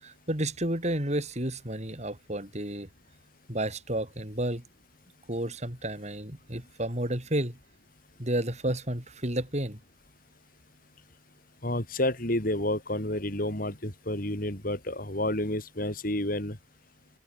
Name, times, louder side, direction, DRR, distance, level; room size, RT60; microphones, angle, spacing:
voice 1, 0.0-2.9 3.5-4.6 5.3-7.6 8.2-9.8, right 1 dB, 40° right, 6.4 m, -31 dB
voice 2, 11.6-16.6, left 1 dB, 50° left, 5.5 m, -30 dB
open air
head